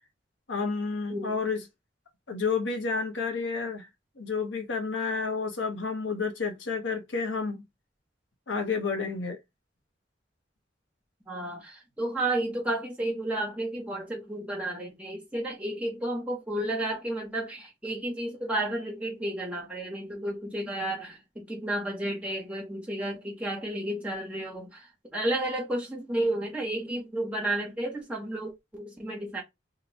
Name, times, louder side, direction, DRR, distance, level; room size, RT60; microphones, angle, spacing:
voice 1, 0.5-1.6 2.3-3.9 4.2-7.6 8.5-9.4, left 4 dB, 85° left, 1.0 m, -30 dB
voice 2, 1.1-1.4 11.3-24.9 25.1-29.4, right 1 dB, 5° right, 1.1 m, -32 dB
2.9 x 2.3 x 4.0 m
head